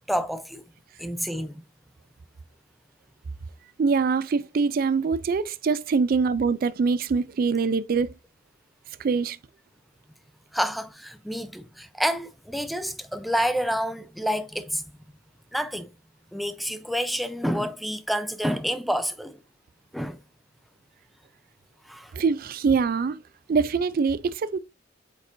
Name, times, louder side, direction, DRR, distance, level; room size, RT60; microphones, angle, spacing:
voice 1, 0.1-0.6 1.0-1.6 10.5-14.8 15.5-15.9 16.3-19.4 19.9-20.2 21.8-22.1, equal, ahead, 0.5 m, -28 dB
voice 2, 3.8-8.1 9.0-9.4 22.1-23.2 23.5-24.6, right 5 dB, 50° right, 0.4 m, -24 dB
8.1 x 4.8 x 2.6 m
head